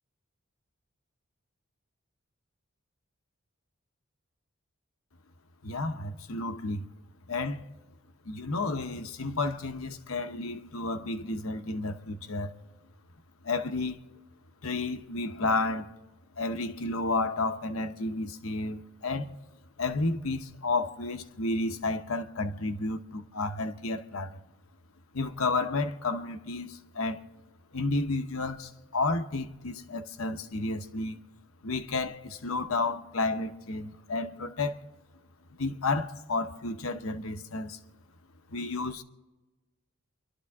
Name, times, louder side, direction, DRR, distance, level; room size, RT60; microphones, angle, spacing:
voice 1, 5.6-6.9 7.3-7.6 8.3-12.5 13.4-14.0 14.6-15.9 16.4-19.3 19.8-24.4 25.1-27.2 27.7-31.2 31.6-34.8 35.5-37.8 38.5-39.0, left 3 dB, 85° left, 1.0 m, -31 dB
29.0 x 12.5 x 3.6 m
head